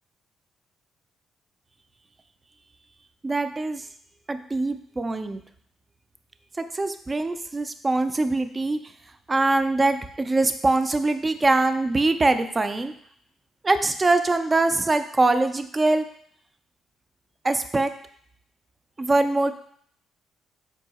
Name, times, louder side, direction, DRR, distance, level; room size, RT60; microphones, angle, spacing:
voice 1, 3.2-3.9 4.3-5.4 6.6-8.8 9.3-12.9 13.6-16.0 17.4-17.9 19.0-19.5, right 2 dB, 25° right, 9 dB, 0.3 m, -23 dB
3.6 x 2.7 x 4.1 m, 0.64 s
cardioid pair, 90°, 0 cm